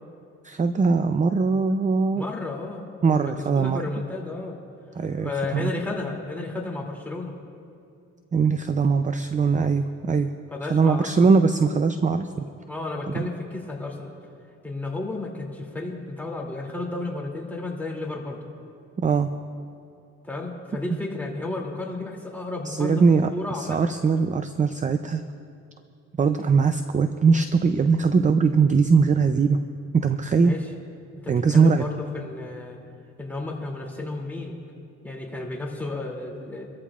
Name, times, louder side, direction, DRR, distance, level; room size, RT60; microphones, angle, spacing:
voice 1, 0.4-2.2 3.0-3.8 5.0-5.7 8.3-10.3 10.6-12.5 13.1-13.3 19.0-19.3 22.7-23.3 23.5-25.2 26.2-29.6 29.9-30.6 31.3-31.8, right 5 dB, 25° right, 9 dB, 0.5 m, -21 dB
voice 2, 2.1-4.6 5.2-7.3 10.5-11.3 12.7-14.1 14.6-18.4 20.2-23.0 23.3-24.0 30.4-30.6 31.2-32.8 33.2-34.5 35.0-36.7, left 2 dB, 5° left, -2 dB, 2.7 m, -32 dB
25.5 x 14.0 x 2.5 m, 2.4 s
cardioid pair, 90°, 30 cm